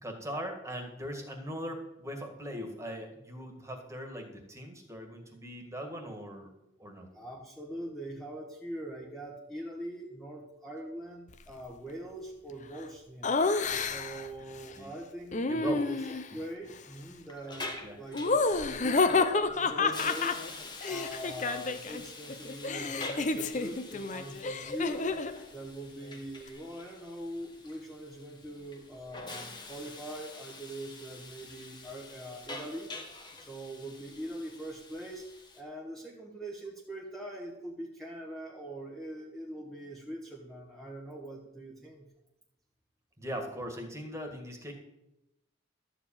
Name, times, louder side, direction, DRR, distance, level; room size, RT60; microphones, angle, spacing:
voice 1, 0.0-6.5 6.8-7.1 14.8-14.9 15.5-15.8 16.3-16.4 17.8-18.0 43.2-44.7, equal, 15° right, 3 dB, 1.9 m, -40 dB
voice 2, 7.1-13.4 13.8-20.4 20.8-25.1 25.5-32.9 33.4-35.2 35.5-42.1, right 1 dB, ahead, -3 dB, 1.3 m, -42 dB
Laughter, 13.2-14.3 15.3-16.3 18.1-22.0 22.3-25.4, left 3 dB, 40° left, 0.7 m, -29 dB
Hiss, 17.0-35.6, left 3 dB, 25° left, 1.4 m, -46 dB
13.0 x 5.0 x 8.8 m, 0.88 s
head